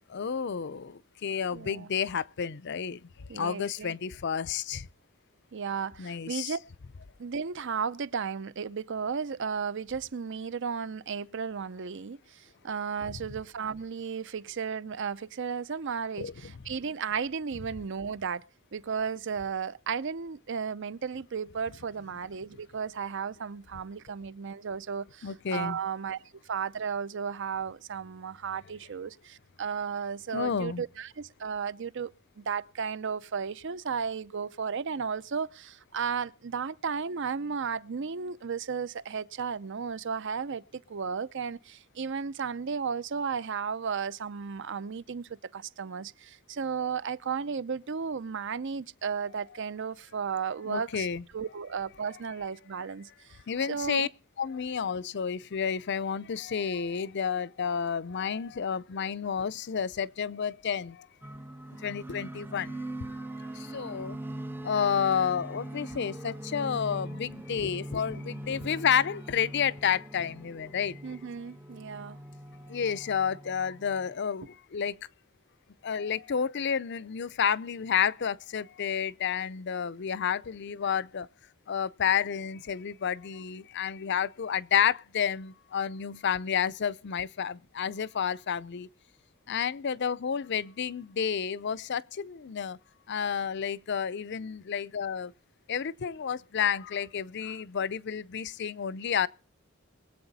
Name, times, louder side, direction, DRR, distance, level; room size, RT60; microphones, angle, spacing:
voice 1, 0.1-4.9 6.0-6.6 16.2-16.5 25.2-25.8 30.3-30.8 50.6-51.2 53.5-54.1 54.4-61.1 61.8-62.8 63.1-63.2 63.5-64.2 64.6-71.0 72.7-75.0 75.8-81.3 81.7-88.9 89.5-92.8 93.1-95.3 95.7-99.3, left 7 dB, 55° left, 0.5 m, -30 dB
voice 2, 1.5-1.9 3.3-3.9 5.5-6.6 7.2-18.4 18.7-26.2 26.5-32.1 32.4-51.1 51.3-53.1 53.7-54.1 71.0-72.2, right 6 dB, 60° right, 0.6 m, -34 dB
sound 1, 61.2-74.1, right 1 dB, 10° right, 0.5 m, -41 dB
22.5 x 8.0 x 4.1 m
head